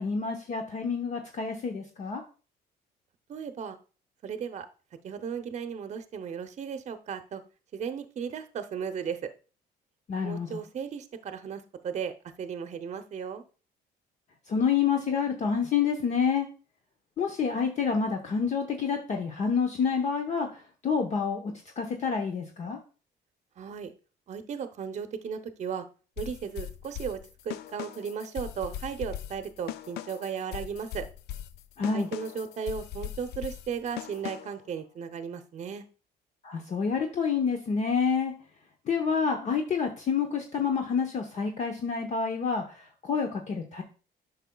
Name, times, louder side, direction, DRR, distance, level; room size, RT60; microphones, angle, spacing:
voice 1, 0.0-2.2 10.1-10.6 14.5-16.5 17.2-22.8 31.8-32.1 36.4-38.3 38.9-43.8, left 6 dB, 45° left, 4 dB, 0.9 m, -28 dB
voice 2, 3.3-3.8 4.2-4.7 5.0-7.4 7.7-9.3 10.2-13.4 23.6-23.9 24.3-25.9 26.2-27.2 27.4-31.1 31.9-35.8, right 7 dB, 45° right, 9 dB, 0.7 m, -35 dB
sound 1, 26.2-34.7, left 12 dB, 75° left, 0.4 m, -40 dB
8.9 x 5.8 x 2.3 m, 0.36 s
cardioid pair, 110°, 17 cm